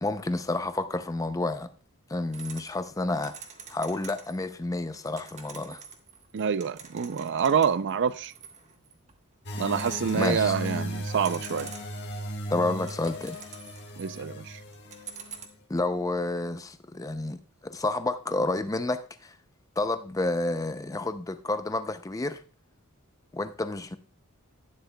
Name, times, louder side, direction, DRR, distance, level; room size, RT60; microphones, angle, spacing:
voice 1, 0.0-1.7 2.1-3.4 3.7-5.8 10.1-10.5 12.5-13.4 15.7-19.3 19.8-22.4 23.3-24.0, left 2 dB, 15° left, 0.5 m, -30 dB
sound 1, 2.3-4.5 4.8-9.1 9.5-10.8 11.1-12.1 12.6-14.4 14.7-15.5, right 6 dB, 30° right, 1.1 m, -46 dB
voice 2, 6.3-8.3 9.6-11.7 14.0-14.6, right 7 dB, 55° right, 0.4 m, -27 dB
sound 2, 9.5-15.4, equal, 50° left, 1.4 m, -37 dB
11.5 x 9.7 x 2.2 m
head